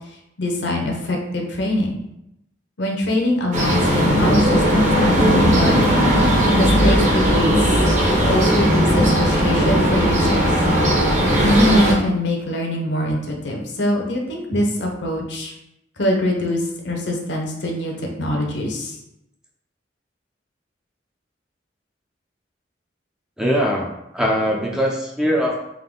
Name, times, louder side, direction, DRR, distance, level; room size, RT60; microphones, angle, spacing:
voice 1, 0.4-2.0 2.8-5.8 6.5-7.6 8.2-10.6 11.4-15.5 16.0-19.0, left 1 dB, 65° left, 1 dB, 0.9 m, -23 dB
sound 1, 3.5-11.9, equal, 40° right, 1.0 m, -17 dB
voice 2, 23.4-25.6, equal, 5° right, -2 dB, 0.5 m, -21 dB
3.7 x 2.7 x 3.7 m, 0.83 s
head